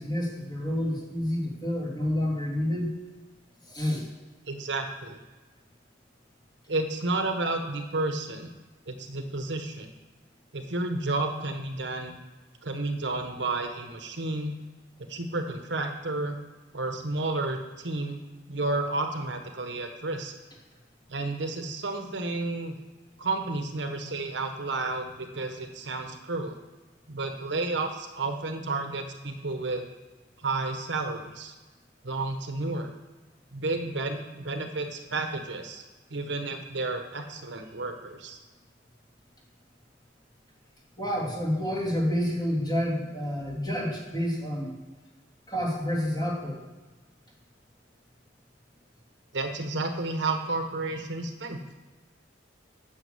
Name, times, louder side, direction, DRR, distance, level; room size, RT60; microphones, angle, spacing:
voice 1, 0.0-3.0 3.7-4.1 41.0-44.8 45.5-46.6, equal, 20° left, -3 dB, 2.9 m, -29 dB
voice 2, 4.5-5.2 6.7-8.5 8.9-9.9 10.5-12.2 12.6-14.5 15.0-16.4 16.7-18.2 18.5-20.3 21.1-22.8 23.2-26.6 27.1-29.9 30.4-31.5 32.0-32.9 33.5-35.8 36.1-38.4 49.3-51.6, right 2 dB, 65° right, 5 dB, 1.1 m, -31 dB
9.3 x 6.4 x 8.0 m, 1.2 s
head